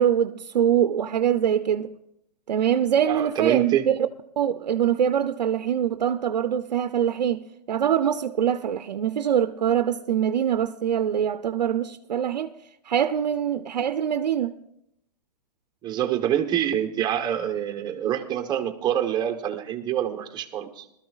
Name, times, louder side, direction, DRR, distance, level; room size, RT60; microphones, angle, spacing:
voice 1, 0.0-1.9 2.5-4.0 4.4-12.5 12.9-14.5, right 9 dB, 90° right, 0.6 m, -24 dB
voice 2, 3.1-4.0 15.8-20.9, right 10 dB, 20° right, 1.0 m, -26 dB
20.0 x 13.0 x 2.4 m
hypercardioid pair, 140°, 21 cm